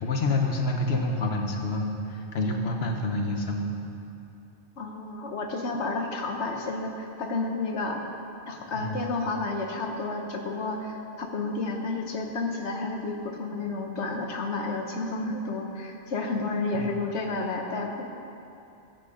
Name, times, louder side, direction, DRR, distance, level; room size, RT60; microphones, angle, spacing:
voice 1, 0.0-3.8 8.7-9.1 16.7-16.9, left 2 dB, 70° left, 2 dB, 1.3 m, -28 dB
voice 2, 4.8-8.0 8.5-18.0, left 3 dB, 90° left, 3 dB, 1.3 m, -31 dB
13.5 x 6.3 x 4.9 m, 2.7 s
omnidirectional pair, 1.1 m